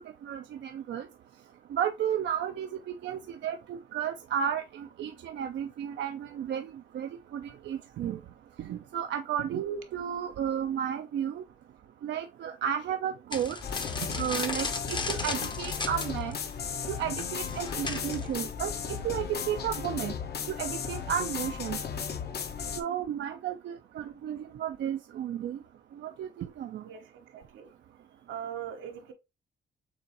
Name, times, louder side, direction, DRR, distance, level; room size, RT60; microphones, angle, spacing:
voice 1, 0.2-1.1 1.7-6.7 6.9-8.2 8.6-11.4 12.0-13.6 14.1-16.4 16.9-18.7 19.0-20.1 20.5-21.8 22.8-25.6 26.0-26.8, right 9 dB, 65° right, 0.5 m, -33 dB
sound 1, 13.3-18.4, left 3 dB, 25° left, 0.7 m, -36 dB
sound 2, 13.6-22.8, left 7 dB, 55° left, 0.9 m, -35 dB
voice 2, 26.8-27.7 28.3-29.1, right 9 dB, 80° right, 1.1 m, -41 dB
7.0 x 2.5 x 2.9 m
cardioid pair, 90°, 20 cm